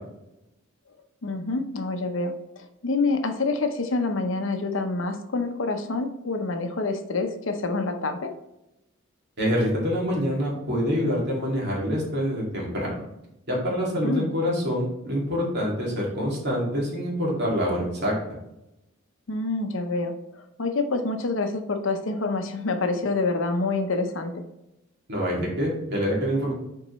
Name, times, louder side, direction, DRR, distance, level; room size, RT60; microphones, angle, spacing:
voice 1, 1.2-8.3 14.0-14.3 19.3-24.4, left 3 dB, 70° left, 7 dB, 0.7 m, -27 dB
voice 2, 9.4-13.1 13.5-18.1 25.1-26.5, equal, 55° right, -3 dB, 2.3 m, -26 dB
7.0 x 4.5 x 3.1 m, 0.88 s
head